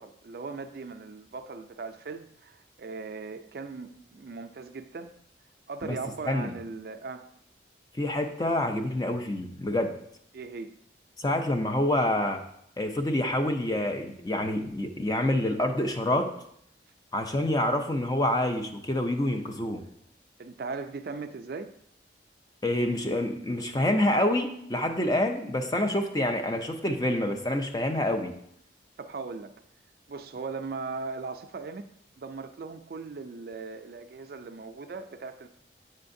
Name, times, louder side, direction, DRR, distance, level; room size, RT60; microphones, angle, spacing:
voice 1, 0.0-5.1 5.7-7.3 10.3-10.7 20.4-21.7 29.0-29.5 30.1-31.9 32.2-35.5, right 4 dB, 55° right, 0.4 m, -38 dB
voice 2, 8.0-9.9 11.2-12.4 12.8-16.3 17.1-19.8 22.6-28.3, left 1 dB, 20° left, 0.5 m, -27 dB
7.6 x 6.4 x 2.6 m
head